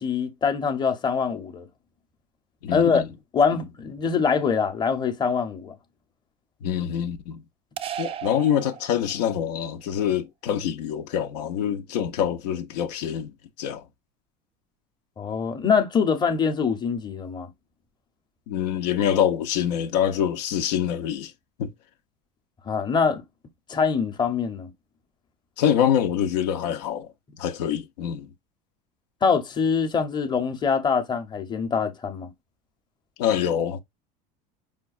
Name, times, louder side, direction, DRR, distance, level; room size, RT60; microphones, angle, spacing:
voice 1, 0.0-1.7 2.7-3.0 3.3-5.7 15.2-17.5 22.7-23.2 23.7-24.7 29.2-32.3, left 6 dB, 20° left, 0.7 m, -24 dB
voice 2, 2.6-3.1 6.6-7.4 8.0-13.9 18.5-21.3 21.6-21.7 25.6-27.1 27.4-28.3 33.2-33.8, left 9 dB, 85° left, 0.6 m, -25 dB
sound 1, 7.8-9.4, right 10 dB, 30° right, 0.3 m, -35 dB
5.1 x 2.2 x 2.4 m
supercardioid pair, 110°, 20 cm